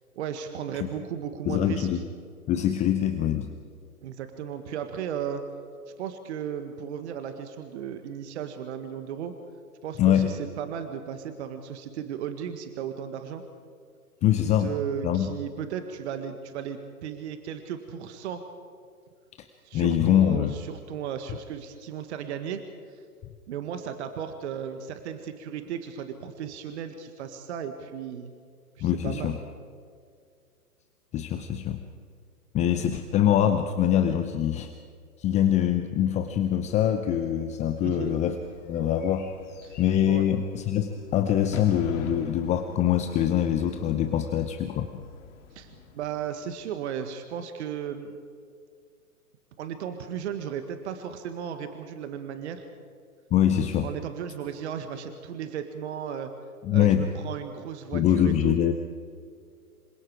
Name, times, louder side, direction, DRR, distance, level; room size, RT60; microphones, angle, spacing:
voice 1, 0.2-1.9 4.0-5.4 6.0-9.4 9.8-13.4 14.4-18.4 19.6-22.6 22.9-23.0 23.5-28.3 28.8-29.4 37.8-38.1 39.6-40.3 45.5-48.2 49.6-52.6 53.8-56.3 56.7-58.6, right 8 dB, 45° right, 8 dB, 1.8 m, -35 dB
voice 2, 1.5-2.0 2.5-3.5 10.0-10.3 14.2-14.7 15.0-15.3 19.7-20.6 28.8-29.4 31.1-31.8 32.5-34.7 35.2-38.4 38.7-39.3 39.8-44.9 53.3-53.9 56.6-57.1 57.9-58.7, left 10 dB, 15° left, 7 dB, 0.8 m, -24 dB
Bird / Fireworks, 37.5-46.7, left 6 dB, 50° left, 2.8 m, -45 dB
27.0 x 25.5 x 4.9 m, 2.2 s
figure-of-eight pair, 120°, 45 cm